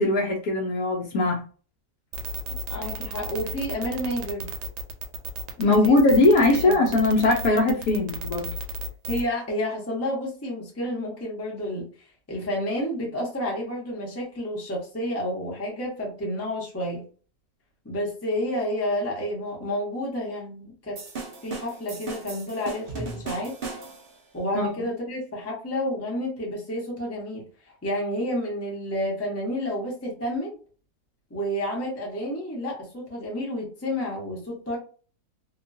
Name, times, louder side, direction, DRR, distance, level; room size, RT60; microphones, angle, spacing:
voice 1, 0.0-1.4 5.6-8.5 24.5-24.7, left 2 dB, 65° left, 0.9 m, -20 dB
sound 1, 2.1-9.3, right 2 dB, 85° right, 1.2 m, -33 dB
voice 2, 2.7-4.5 5.6-6.0 6.6-6.8 9.1-11.9 12.3-17.0 17.8-21.0 21.4-23.6 24.3-27.4 27.8-30.5 31.3-34.8, equal, 15° left, 0.5 m, -30 dB
sound 2, 21.0-24.2, right 4 dB, 60° right, 0.5 m, -37 dB
2.9 x 2.2 x 2.6 m
omnidirectional pair, 1.8 m